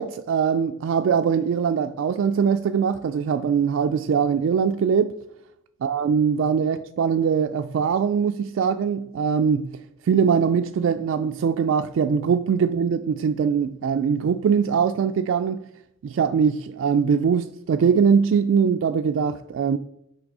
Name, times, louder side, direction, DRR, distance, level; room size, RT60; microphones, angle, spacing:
voice 1, 0.0-5.1 5.8-15.6 16.0-19.8, right 6 dB, 90° right, 0.3 m, -22 dB
6.0 x 3.4 x 5.3 m
head